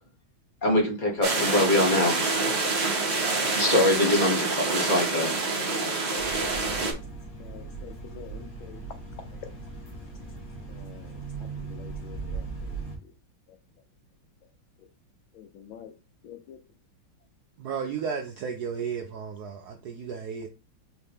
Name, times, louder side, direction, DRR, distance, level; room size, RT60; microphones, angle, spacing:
voice 1, 0.6-2.1 3.5-5.3, left 1 dB, 30° left, 0.9 m, -23 dB
sound 1, 1.2-6.9, right 3 dB, 40° right, 0.6 m, -26 dB
sound 2, 6.2-13.0, right 4 dB, 55° left, 2.4 m, -39 dB
voice 2, 7.4-8.8 10.7-12.8 15.3-15.9 16.2-16.6, left 8 dB, 75° left, 1.5 m, -47 dB
voice 3, 17.6-20.5, right 6 dB, 75° right, 0.9 m, -33 dB
4.7 x 3.0 x 3.4 m
omnidirectional pair, 2.3 m